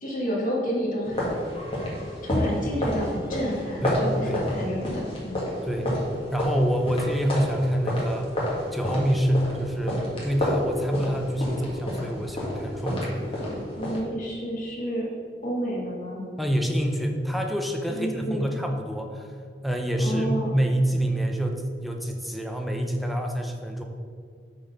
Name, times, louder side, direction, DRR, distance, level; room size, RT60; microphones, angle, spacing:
voice 1, 0.0-1.3 2.2-5.5 13.5-15.1 15.4-16.2 17.9-18.5 20.0-20.5, equal, 50° left, -3 dB, 1.8 m, -30 dB
sound 1, 1.0-14.0, left 1 dB, 35° left, 1.8 m, -30 dB
voice 2, 3.8-4.4 5.6-6.0 6.3-8.4 8.7-13.2 16.4-19.3 19.6-23.8, equal, ahead, 2 dB, 0.5 m, -26 dB
6.2 x 4.2 x 5.5 m, 2.1 s
head